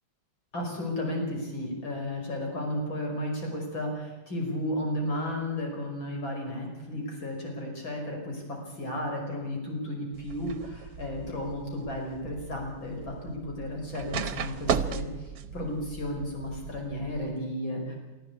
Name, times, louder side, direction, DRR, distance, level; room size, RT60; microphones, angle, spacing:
voice 1, 0.5-18.0, left 1 dB, 85° left, 1 dB, 6.1 m, -33 dB
sound 1, 10.1-17.3, right 7 dB, 65° right, 1.5 m, -36 dB
24.5 x 14.0 x 8.4 m, 1.1 s
omnidirectional pair, 2.1 m